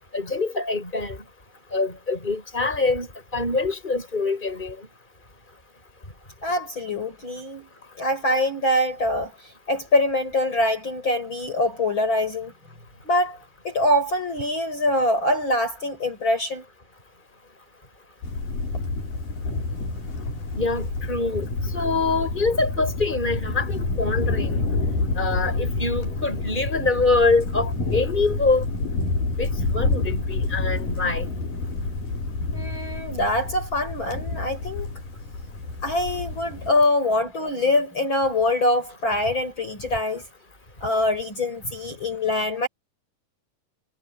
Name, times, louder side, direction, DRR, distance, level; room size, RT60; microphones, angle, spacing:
voice 1, 0.1-1.2 1.7-4.8 20.6-21.5 21.7-24.6 25.2-28.6 29.4-31.2, left 3 dB, 15° left, 7.1 m, -24 dB
voice 2, 6.4-7.7 8.0-9.3 9.7-12.5 13.0-13.4 13.6-16.6 32.5-34.9 35.8-40.2 40.8-42.7, left 1 dB, 35° left, 7.1 m, -24 dB
sound 1, 18.2-36.7, left 3 dB, 80° left, 8.0 m, -28 dB
omnidirectional pair, 3.8 m